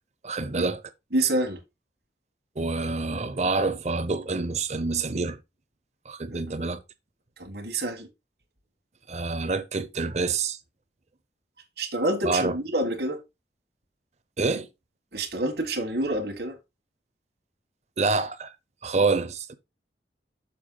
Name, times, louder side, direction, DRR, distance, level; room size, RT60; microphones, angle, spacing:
voice 1, 0.2-0.8 2.6-5.4 6.1-6.8 9.1-10.6 12.2-12.5 14.4-14.7 18.0-18.5 18.8-19.5, right 3 dB, 40° right, 0.7 m, -27 dB
voice 2, 1.1-1.6 7.4-8.1 11.8-13.2 15.1-16.6, right 1 dB, 60° right, 1.5 m, -27 dB
6.8 x 5.2 x 3.9 m
head